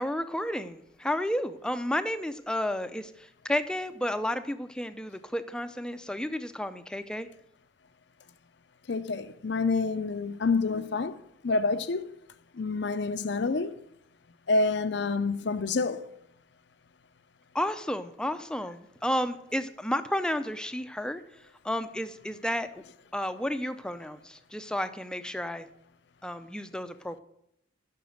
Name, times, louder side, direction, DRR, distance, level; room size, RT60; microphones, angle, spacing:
voice 1, 0.0-7.3 17.5-21.2 21.6-22.8 23.1-25.7 26.2-27.2, left 1 dB, 5° left, 0.5 m, -32 dB
voice 2, 8.9-11.2 11.4-12.1 12.6-13.7 14.5-16.0, left 3 dB, 60° left, 0.6 m, -27 dB
11.5 x 6.0 x 7.9 m
head